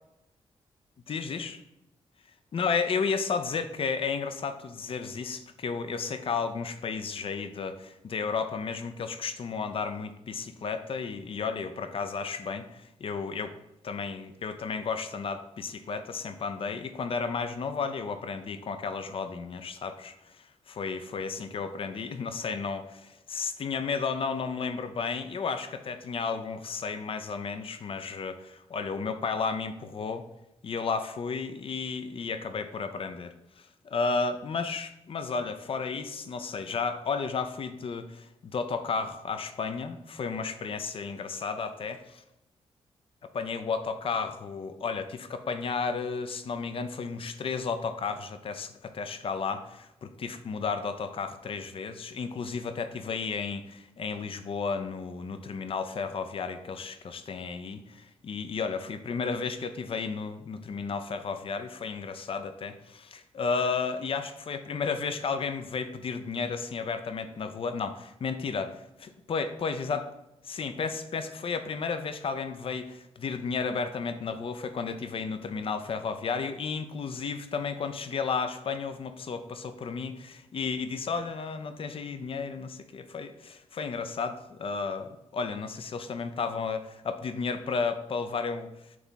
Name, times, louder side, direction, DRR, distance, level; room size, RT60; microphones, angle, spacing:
voice 1, 1.1-1.6 2.5-13.5 13.8-30.3 30.6-33.3 33.8-42.2 43.3-68.7 69.3-70.0 70.5-88.7, left 5 dB, 55° left, 9 dB, 0.6 m, -33 dB
6.1 x 3.5 x 5.7 m, 0.90 s
cardioid pair, 80°, 11 cm